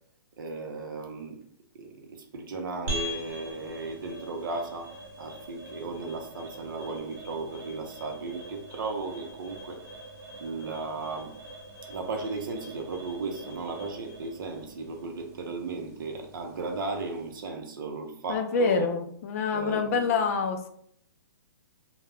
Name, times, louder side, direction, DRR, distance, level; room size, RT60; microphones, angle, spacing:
voice 1, 0.4-1.4 1.7-4.9 5.2-9.8 10.4-11.3 11.9-18.9 19.5-20.1, right 3 dB, 65° right, 3 dB, 0.6 m, -35 dB
sound 1, 2.9-17.5, equal, 45° right, 0.9 m, -43 dB
voice 2, 18.3-20.7, left 5 dB, 40° left, 6 dB, 0.4 m, -26 dB
2.3 x 2.1 x 3.4 m, 0.66 s
hypercardioid pair, 150°, 12 cm